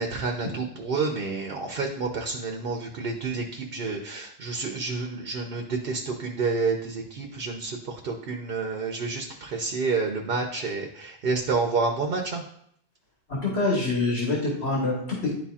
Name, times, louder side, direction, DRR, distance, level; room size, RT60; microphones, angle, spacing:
voice 1, 0.0-12.4, right 4 dB, 65° right, 2 dB, 0.9 m, -29 dB
voice 2, 13.3-15.4, left 2 dB, 85° left, -3 dB, 1.7 m, -26 dB
10.5 x 4.2 x 2.4 m, 0.69 s
omnidirectional pair, 1.1 m